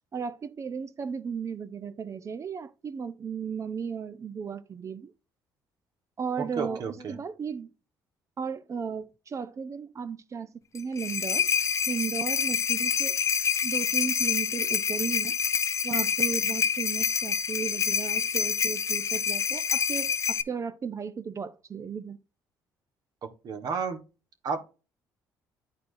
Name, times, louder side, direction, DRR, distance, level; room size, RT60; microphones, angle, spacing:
voice 1, 0.1-5.1 6.2-7.7 8.4-11.5 11.9-13.2 13.6-15.4 15.8-22.2, right 6 dB, 40° right, 0.6 m, -35 dB
voice 2, 6.4-7.2 23.4-24.0 24.4-24.6, right 5 dB, 60° right, 1.3 m, -32 dB
sound 1, 10.7-20.4, left 7 dB, 40° left, 0.6 m, -27 dB
10.5 x 4.3 x 2.6 m
supercardioid pair, 70°, 8 cm